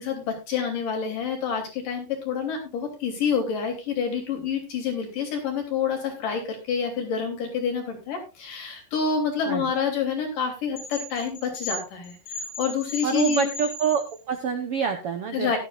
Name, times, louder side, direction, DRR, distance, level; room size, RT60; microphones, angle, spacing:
voice 1, 0.0-13.5 15.3-15.6, left 6 dB, 65° left, 3 dB, 4.8 m, -28 dB
sound 1, 10.8-14.3, left 2 dB, 90° left, 7.9 m, -36 dB
voice 2, 13.0-15.6, right 6 dB, 65° right, 6 dB, 1.4 m, -26 dB
16.0 x 12.0 x 2.5 m, 0.28 s
omnidirectional pair, 4.0 m